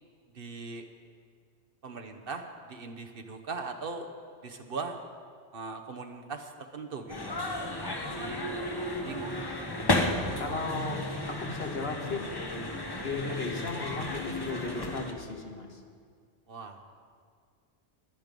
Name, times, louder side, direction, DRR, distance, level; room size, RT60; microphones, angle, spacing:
voice 1, 0.3-0.9 1.8-4.1 4.4-5.0 5.5-7.3 8.0-8.5 9.0-9.6 13.2-13.4 16.5-16.8, right 4 dB, 55° right, 5 dB, 1.1 m, -40 dB
sound 1, 7.1-15.1, left 1 dB, 20° left, 0.9 m, -33 dB
voice 2, 10.4-12.2 13.0-15.8, left 3 dB, 60° left, 2 dB, 1.6 m, -35 dB
21.0 x 7.8 x 5.3 m, 2.1 s
omnidirectional pair, 1.2 m